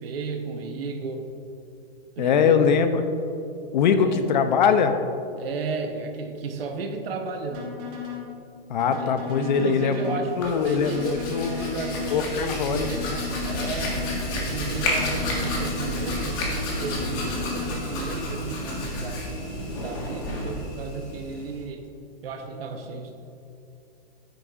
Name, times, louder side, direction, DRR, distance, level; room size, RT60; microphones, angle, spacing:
voice 1, 0.0-1.3 2.2-2.6 3.9-4.3 5.4-7.8 8.9-13.1 13.4-14.0 14.3-16.4 16.8-21.9 22.2-23.2, right 4 dB, 75° right, 4 dB, 1.0 m, -34 dB
voice 2, 2.2-3.0 3.7-4.9 8.7-11.7 12.1-13.2, left 6 dB, 50° left, 8 dB, 0.6 m, -22 dB
sound 1, 7.5-8.3 8.8-10.3 10.8-12.3 12.8-14.3 14.8-16.3 16.8-17.7, left 8 dB, 25° right, 1.4 m, -35 dB
Hands, 10.2-21.6, left 1 dB, 25° left, 1.5 m, -30 dB
10.0 x 9.5 x 2.5 m, 2.8 s
hypercardioid pair, 165°, 30 cm